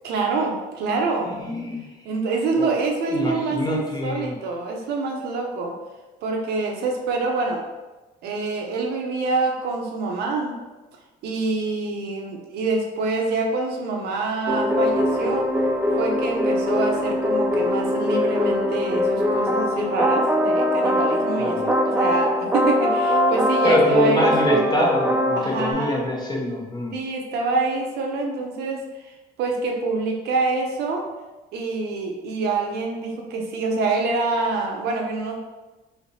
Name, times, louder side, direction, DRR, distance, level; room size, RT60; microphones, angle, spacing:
voice 1, 0.0-1.3 2.0-5.7 6.2-7.6 8.2-10.6 11.2-15.5 16.0-24.8 25.3-26.1 26.9-28.8 29.4-31.1 31.5-35.4, right 3 dB, 75° right, 1 dB, 0.6 m, -26 dB
voice 2, 1.4-1.9 2.6-2.7 3.1-4.3 21.4-21.7 23.6-27.0, left 1 dB, 25° left, -1 dB, 0.7 m, -24 dB
sound 1, 14.5-25.7, left 1 dB, 10° right, 0.3 m, -22 dB
3.3 x 2.8 x 2.6 m, 1.1 s
cardioid pair, 110°, 17 cm